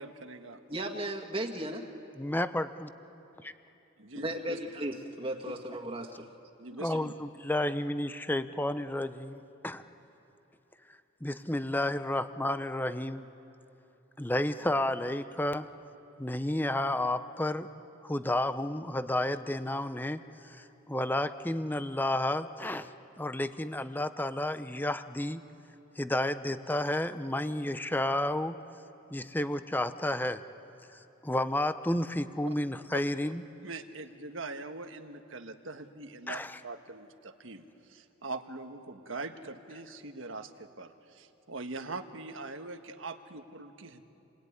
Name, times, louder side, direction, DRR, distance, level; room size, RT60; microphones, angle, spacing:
voice 1, 0.0-0.6 4.0-4.6 5.5-5.6 6.6-7.1 32.4-32.5 33.6-44.0, right 3 dB, 80° right, 7 dB, 1.5 m, -42 dB
voice 2, 0.7-1.9 4.2-6.3 6.9-7.0, right 1 dB, 30° right, 2 dB, 1.9 m, -36 dB
voice 3, 2.2-2.9 6.7-9.8 11.2-13.2 14.2-15.7 16.2-17.7 18.0-20.2 20.5-22.9 23.2-25.4 26.0-28.6 29.1-30.4 31.2-33.4 36.3-36.6, left 1 dB, 10° left, 11 dB, 0.7 m, -31 dB
29.0 x 21.0 x 9.8 m, 3.0 s
head